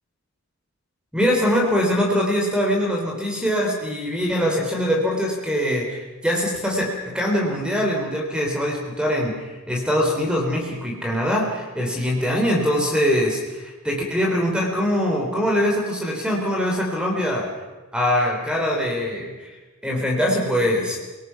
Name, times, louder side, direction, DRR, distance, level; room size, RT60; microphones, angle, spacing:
voice 1, 1.1-17.5 17.9-19.6 19.8-21.0, equal, 5° right, 0 dB, 3.6 m, -23 dB
29.5 x 19.0 x 5.8 m, 1.2 s
head